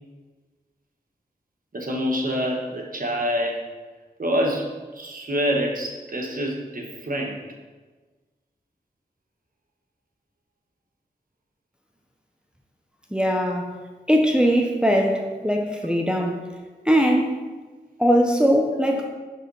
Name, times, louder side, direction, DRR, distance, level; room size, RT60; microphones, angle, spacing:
voice 1, 1.7-3.6 4.2-7.4, equal, 55° right, 0 dB, 1.3 m, -26 dB
voice 2, 13.1-13.7 14.1-16.4 16.9-17.4 18.0-19.1, equal, 5° right, 1 dB, 0.7 m, -20 dB
5.5 x 3.5 x 5.5 m, 1.3 s
cardioid pair, 40°, 18 cm